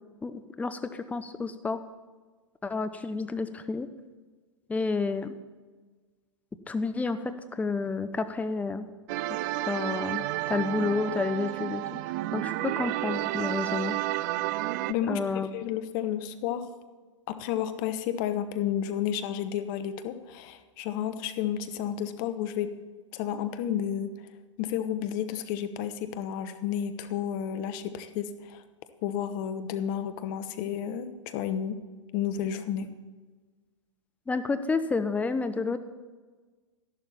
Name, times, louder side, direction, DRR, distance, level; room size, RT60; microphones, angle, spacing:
voice 1, 0.2-1.8 2.6-3.9 4.7-5.3 6.7-8.9 9.7-12.0 12.3-14.0 15.1-15.5 34.3-35.8, left 4 dB, 10° left, 9 dB, 0.8 m, -30 dB
sound 1, 9.1-14.9, right 16 dB, 35° right, 0.4 m, -31 dB
voice 2, 14.9-16.6 17.3-22.7 23.1-24.1 24.6-28.6 29.0-31.8 32.1-32.9, left 9 dB, 40° left, 10 dB, 1.0 m, -31 dB
12.5 x 11.5 x 4.2 m, 1.4 s
figure-of-eight pair, 110°, 16 cm